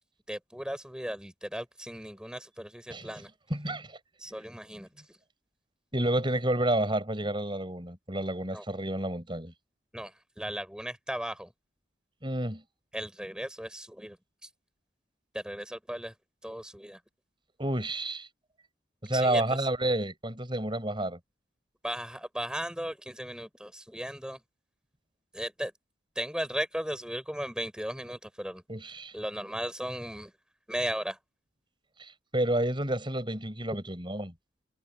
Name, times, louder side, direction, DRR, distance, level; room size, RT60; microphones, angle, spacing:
voice 1, 0.3-3.3 4.2-5.2 8.5-8.7 9.9-11.5 12.9-14.2 14.4-14.5 15.3-16.1 16.4-17.0 19.1-19.7 21.8-24.4 25.3-25.7 26.2-28.6 29.1-30.3 30.7-31.2, equal, 5° right, 5.1 m, -36 dB
voice 2, 3.5-4.0 5.9-9.5 12.2-12.6 17.6-18.3 19.0-21.2 28.7-29.1 32.0-34.3, right 1 dB, 25° right, 7.1 m, -30 dB
head